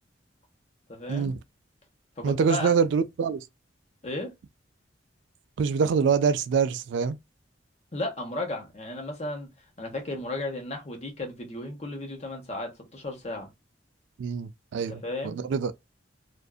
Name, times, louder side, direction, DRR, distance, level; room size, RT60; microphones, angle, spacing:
voice 1, 0.9-1.3 2.2-2.7 4.0-4.3 7.9-9.5 9.8-13.5 14.9-15.4, left 2 dB, 35° left, 1.0 m, -34 dB
voice 2, 2.2-3.4 5.6-7.2 14.2-15.0 15.5-15.7, right 6 dB, 70° right, 0.3 m, -24 dB
2.5 x 2.4 x 2.3 m
head